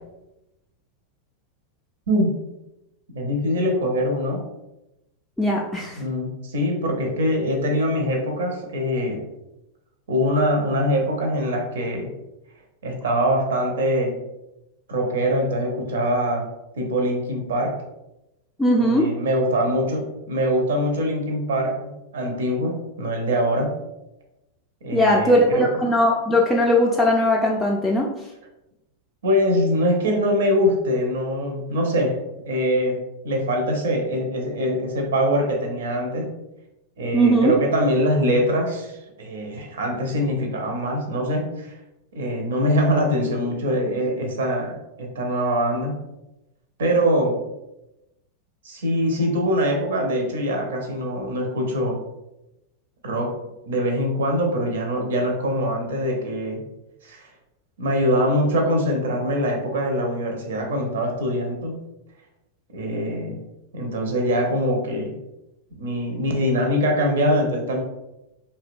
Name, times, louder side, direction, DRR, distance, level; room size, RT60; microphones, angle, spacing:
voice 1, 3.1-4.4 6.0-9.2 10.1-12.1 12.8-14.2 14.9-16.5 16.7-17.8 18.8-23.8 24.8-25.7 29.2-32.2 32.5-36.4 37.0-41.7 42.1-46.0 46.8-47.4 48.6-52.0 53.0-53.3 53.6-56.6 57.0-57.3 57.8-61.8 62.7-63.4 63.7-65.2 65.8-67.8, equal, 60° right, 2 dB, 0.5 m, -23 dB
voice 2, 5.4-6.0 18.6-19.1 24.9-28.1 37.1-37.5, equal, 5° left, -3 dB, 0.3 m, -19 dB
2.7 x 2.1 x 2.5 m, 0.92 s
figure-of-eight pair, 90°, 0 cm